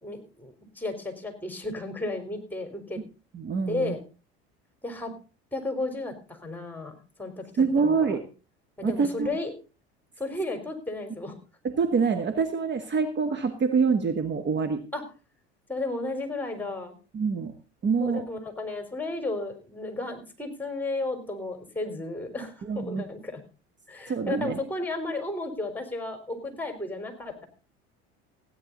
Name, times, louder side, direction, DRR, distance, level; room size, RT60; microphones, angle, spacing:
voice 1, 0.0-3.0 3.7-4.0 4.8-5.1 5.5-8.2 8.8-9.5 10.2-11.3 14.9-15.0 15.7-17.0 18.0-23.4 23.9-27.5, left 2 dB, 5° left, 6 dB, 4.2 m, -33 dB
voice 2, 3.3-3.9 7.6-8.2 8.8-9.4 11.6-14.8 17.1-17.5 17.8-18.3 22.6-23.0 24.1-24.6, right 5 dB, 35° right, 8 dB, 1.6 m, -26 dB
16.0 x 10.0 x 4.0 m, 0.34 s
hypercardioid pair, 80°, 32 cm